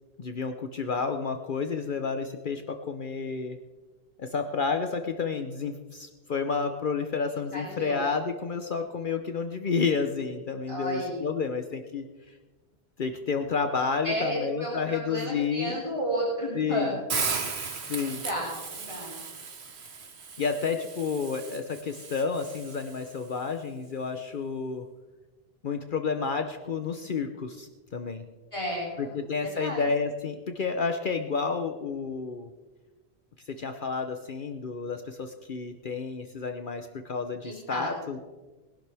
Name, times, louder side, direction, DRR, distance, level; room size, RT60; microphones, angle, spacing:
voice 1, 0.2-3.6 4.2-12.0 13.0-15.8 16.5-16.9 17.9-18.2 20.4-24.8 25.6-28.2 29.0-32.5 33.5-38.2, left 5 dB, 55° left, 7 dB, 0.9 m, -30 dB
voice 2, 7.5-8.0 10.7-11.3 14.0-16.9 18.0-19.2 28.5-29.1 29.4-29.8 37.4-38.1, equal, 30° left, -5 dB, 3.1 m, -32 dB
Hiss, 17.1-23.2, right 5 dB, 85° right, 1.5 m, -36 dB
21.0 x 11.5 x 3.4 m, 1.2 s
omnidirectional pair, 1.1 m